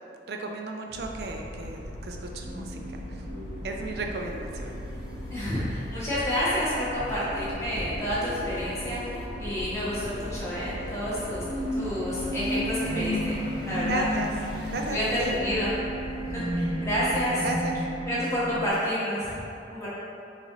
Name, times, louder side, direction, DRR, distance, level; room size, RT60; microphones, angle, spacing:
voice 1, 0.3-2.8 3.6-4.7 13.8-14.3 14.7-15.3 17.4-17.8, right 2 dB, 60° right, 2 dB, 0.4 m, -34 dB
sound 1, 0.9-17.3, equal, 75° left, 0.7 m, -39 dB
sound 2, 2.4-18.7, equal, 25° right, 0.7 m, -35 dB
voice 2, 5.3-9.0 9.4-11.4 11.7-13.4 13.6-14.0 14.9-15.7 16.3-17.4 18.0-19.3 19.7-19.9, equal, 15° left, -10 dB, 1.1 m, -29 dB
4.9 x 2.5 x 3.8 m, 2.8 s
head